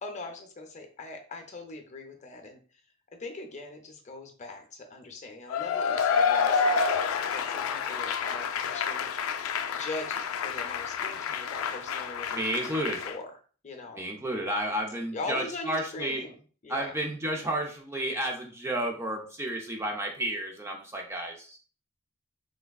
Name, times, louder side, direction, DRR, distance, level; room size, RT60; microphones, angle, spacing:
voice 1, 0.0-2.6 3.2-6.8 7.3-9.1 9.7-13.4 13.6-14.1 15.1-17.0, left 2 dB, 35° left, 4 dB, 0.6 m, -41 dB
Cheering / Applause / Crowd, 5.5-13.2, left 6 dB, 80° left, 0.3 m, -29 dB
voice 2, 12.4-13.0 14.0-16.2 16.7-21.6, right 1 dB, 15° right, 0 dB, 0.5 m, -31 dB
3.3 x 3.2 x 2.3 m, 0.40 s
head